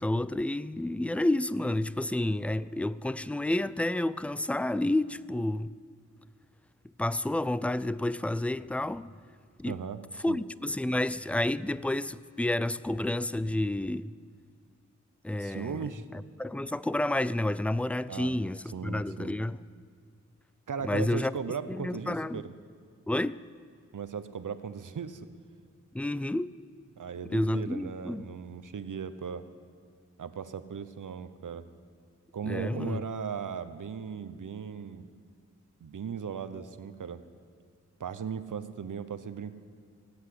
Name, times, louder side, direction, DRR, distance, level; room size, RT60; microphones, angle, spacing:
voice 1, 0.0-5.7 7.0-9.1 9.6-9.8 10.2-14.2 15.2-19.6 20.9-21.3 21.7-22.4 23.1-23.4 25.9-26.5 27.3-28.3 32.4-33.0, left 1 dB, 5° left, 0.4 m, -30 dB
voice 2, 9.6-10.0 10.3-10.4 15.4-16.0 18.1-18.3 18.7-19.3 20.7-22.5 23.9-25.3 27.0-29.4 30.2-31.6 32.3-35.1 35.8-37.2 38.0-39.5, right 6 dB, 80° right, 0.9 m, -37 dB
18.5 x 8.2 x 9.6 m
cardioid pair, 50°, 31 cm